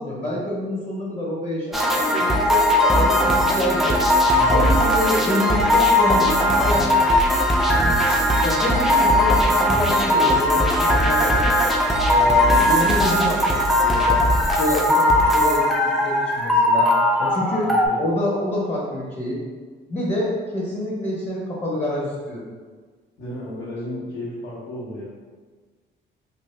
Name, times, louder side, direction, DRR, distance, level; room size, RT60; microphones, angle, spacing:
voice 1, 0.0-4.0 4.5-7.0 8.1-11.6 12.0-16.9 17.2-17.7 18.0-19.4 19.9-22.5, left 1 dB, 35° left, -4 dB, 0.8 m, -27 dB
sound 1, 1.7-17.9, left 1 dB, ahead, 0.3 m, -18 dB
voice 2, 4.3-4.7 17.6-18.0 23.2-25.0, equal, 85° left, -8 dB, 1.2 m, -33 dB
2.6 x 2.5 x 3.2 m, 1.5 s
cardioid pair, 90°, 20 cm